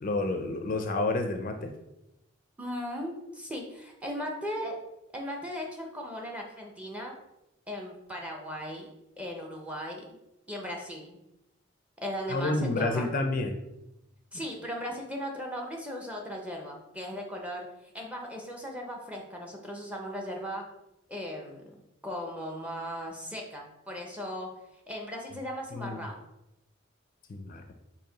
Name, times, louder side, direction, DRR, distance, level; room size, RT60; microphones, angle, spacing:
voice 1, 0.0-1.7 12.3-13.6 25.7-26.0 27.3-27.7, left 2 dB, 45° left, 6 dB, 0.4 m, -30 dB
voice 2, 2.6-4.8 5.1-7.2 7.7-8.9 9.2-10.2 10.5-11.2 12.0-13.1 14.3-20.6 21.1-21.7 22.0-24.5 24.9-26.2, equal, 5° right, 0 dB, 0.6 m, -37 dB
4.6 x 2.9 x 3.9 m, 0.90 s
head